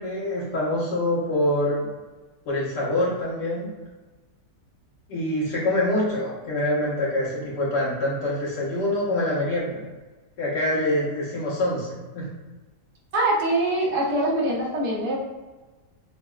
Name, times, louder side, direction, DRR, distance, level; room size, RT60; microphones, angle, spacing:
voice 1, 0.0-1.9 2.5-3.7 5.1-9.8 10.4-12.3, left 1 dB, 80° left, -7 dB, 1.8 m, -25 dB
voice 2, 13.1-15.2, right 1 dB, 70° right, -4 dB, 1.4 m, -23 dB
5.7 x 2.0 x 2.3 m, 1.2 s
omnidirectional pair, 1.8 m